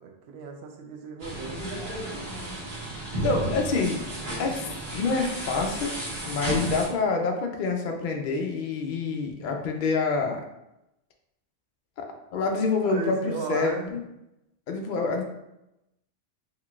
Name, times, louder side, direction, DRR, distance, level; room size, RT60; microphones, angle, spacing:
voice 1, 0.0-1.9 12.8-14.0, right 4 dB, 70° right, 2 dB, 0.8 m, -36 dB
sound 1, 1.2-6.9, right 1 dB, 45° right, 1.5 m, -33 dB
voice 2, 3.2-4.0 4.4-6.0 6.3-10.4 12.0-12.1 12.3-14.0 14.7-15.2, left 4 dB, 55° left, 2 dB, 0.6 m, -27 dB
3.7 x 3.0 x 2.4 m, 0.88 s
omnidirectional pair, 1.2 m